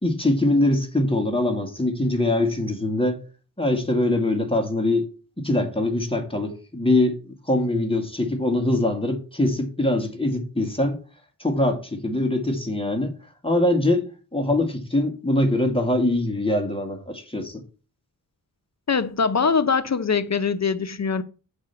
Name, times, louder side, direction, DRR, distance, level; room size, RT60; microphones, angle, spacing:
voice 1, 0.0-3.2 3.6-5.1 5.4-11.0 11.4-13.1 13.4-17.6, left 1 dB, 15° left, 1.9 m, -23 dB
voice 2, 18.9-21.2, left 5 dB, 45° left, 0.7 m, -22 dB
8.8 x 4.8 x 5.7 m
wide cardioid pair, 90°, 36 cm